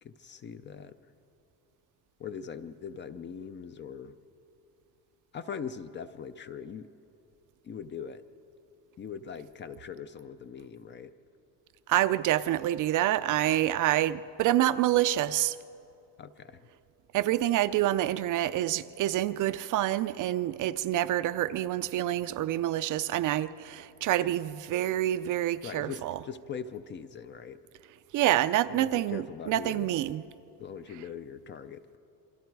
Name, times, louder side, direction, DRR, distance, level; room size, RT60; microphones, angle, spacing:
voice 1, 0.0-1.1 2.2-4.2 5.3-6.9 7.6-8.2 9.0-11.1 16.2-16.7 25.6-27.6 28.7-29.9 30.6-31.9, left 7 dB, 30° left, 0.4 m, -41 dB
voice 2, 11.9-15.6 17.1-26.2 28.1-30.2, right 13 dB, 50° right, 0.5 m, -27 dB
27.5 x 24.5 x 4.6 m
cardioid pair, 175°, 40 cm